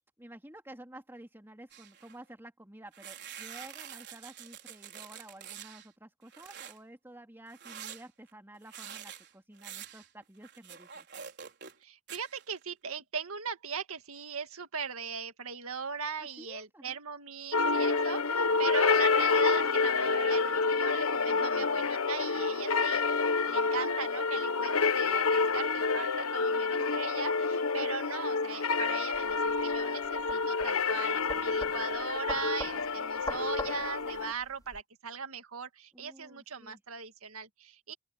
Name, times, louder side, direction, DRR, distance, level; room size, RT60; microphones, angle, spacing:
voice 1, 0.2-11.1 16.2-17.0 21.2-21.7 26.5-26.9 35.9-36.8, right 1 dB, 10° right, 3.2 m, -51 dB
sound 1, 1.7-2.1 2.9-5.9 6.3-6.8 7.5-11.8 12.1-12.6, right 9 dB, 55° right, 4.6 m, -46 dB
voice 2, 11.8-23.1 23.5-37.9, right 6 dB, 80° right, 2.0 m, -39 dB
sound 2, 17.5-34.3, left 4 dB, 80° left, 1.2 m, -28 dB
sound 3, 29.1-34.8, left 2 dB, 20° left, 5.1 m, -43 dB
open air
head